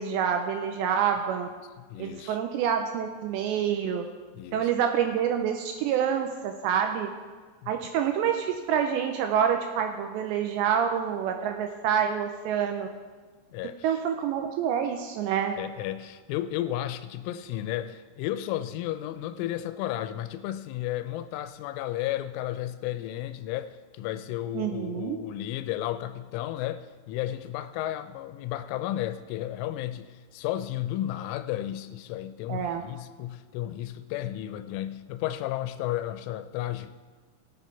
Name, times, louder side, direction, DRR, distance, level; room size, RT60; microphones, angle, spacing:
voice 1, 0.0-1.5 2.0-4.1 4.5-7.1 7.7-12.9 13.8-15.6 24.5-25.2 32.5-32.8, right 8 dB, 80° right, 2.6 m, -27 dB
voice 2, 1.8-2.4 4.4-4.7 7.6-7.7 13.5-14.0 15.6-36.9, left 13 dB, 85° left, 3.1 m, -33 dB
18.0 x 7.2 x 4.5 m
omnidirectional pair, 5.6 m